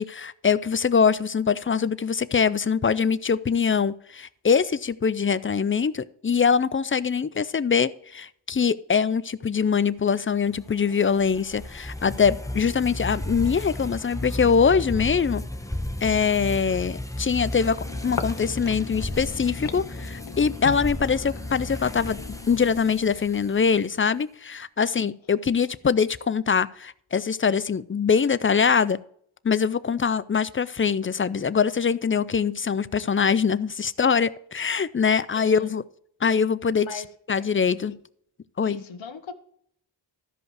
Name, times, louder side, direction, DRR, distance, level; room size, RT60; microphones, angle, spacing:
voice 1, 0.0-15.4 16.0-29.0 29.4-35.8 36.2-37.0 37.3-38.0 38.6-38.8, left 6 dB, 30° left, 0.4 m, -23 dB
sound 1, 10.5-23.9, left 1 dB, 5° left, 1.0 m, -34 dB
sound 2, 17.8-23.1, left 6 dB, 45° left, 0.8 m, -39 dB
voice 2, 35.3-35.7 36.8-37.1 37.4-37.5 38.6-39.3, left 5 dB, 70° left, 1.1 m, -39 dB
13.5 x 5.3 x 4.8 m
wide cardioid pair, 65°, 48 cm